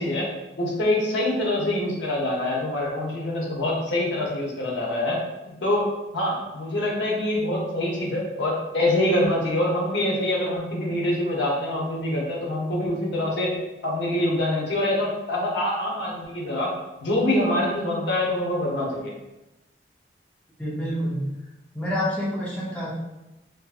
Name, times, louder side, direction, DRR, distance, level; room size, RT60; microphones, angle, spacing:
voice 1, 0.0-5.9 6.1-13.5 13.8-16.7 17.0-19.1, left 1 dB, 75° left, -2 dB, 0.7 m, -25 dB
voice 2, 20.6-21.3 21.7-22.9, equal, 5° left, -7 dB, 0.5 m, -27 dB
2.7 x 2.5 x 2.4 m, 0.99 s
head